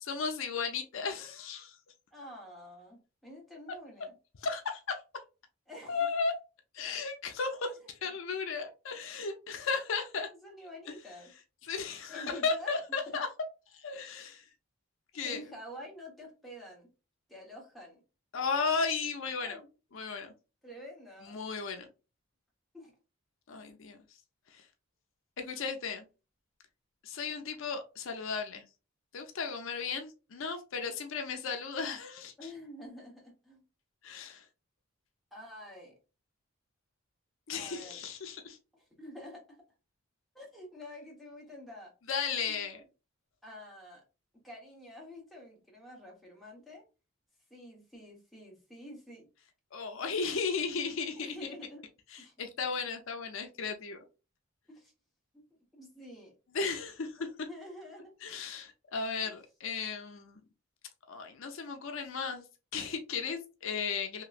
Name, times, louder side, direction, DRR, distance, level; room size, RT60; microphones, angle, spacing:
voice 1, 0.1-1.7 4.4-5.0 5.9-6.3 6.7-7.7 8.0-10.3 11.6-13.3 13.8-14.4 15.1-15.4 18.3-19.6 19.9-20.3 21.2-21.9 23.5-24.0 24.5-24.6 25.4-26.1 27.0-28.6 29.1-32.5 34.0-34.4 37.5-38.6 42.1-42.8 49.7-51.3 52.1-54.0 56.5-57.3 58.2-60.4 61.1-62.5 62.7-64.2, left 5 dB, 70° left, 0.5 m, -35 dB
voice 2, 2.1-4.1 5.7-6.1 7.8-7.9 10.3-11.3 12.1-13.2 15.2-16.9 17.3-18.0 19.4-19.6 20.6-21.4 22.7-22.9 32.4-33.6 35.3-35.9 37.5-38.0 38.7-39.6 40.3-41.9 42.4-42.7 43.4-44.0 44.4-46.8 47.5-49.3 51.2-51.8 52.2-52.3 54.7-54.9 55.3-55.4 55.7-56.3 57.4-58.1 59.2-59.4, left 1 dB, ahead, 1.1 m, -48 dB
3.0 x 2.9 x 2.4 m
head